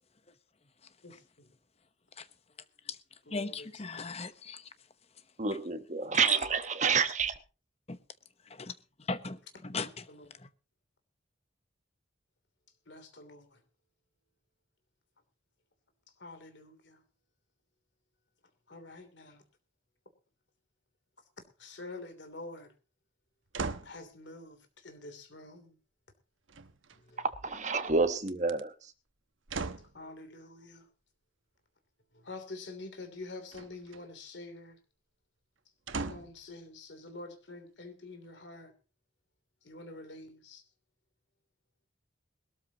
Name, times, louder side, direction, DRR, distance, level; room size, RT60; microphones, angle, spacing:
voice 1, 1.0-1.5 3.2-4.2 9.7-10.3 12.9-13.6 16.2-17.0 18.7-19.4 21.6-22.7 23.8-25.8 26.9-27.3 29.9-30.9 32.1-34.8 35.9-38.7 39.6-40.6, left 2 dB, 65° left, 3.1 m, -47 dB
voice 2, 3.3-4.6 6.1-6.4 7.9-8.0 8.6-8.7 9.1-10.0, left 3 dB, 35° left, 0.9 m, -37 dB
voice 3, 5.4-7.3 27.4-28.7, right 5 dB, 40° right, 1.1 m, -28 dB
sound 1, 23.5-24.0 26.5-27.2 28.2-28.6 29.5-30.0 33.5-34.0 35.9-36.4 37.1-37.2, right 4 dB, 85° right, 1.0 m, -38 dB
21.5 x 13.0 x 2.9 m
head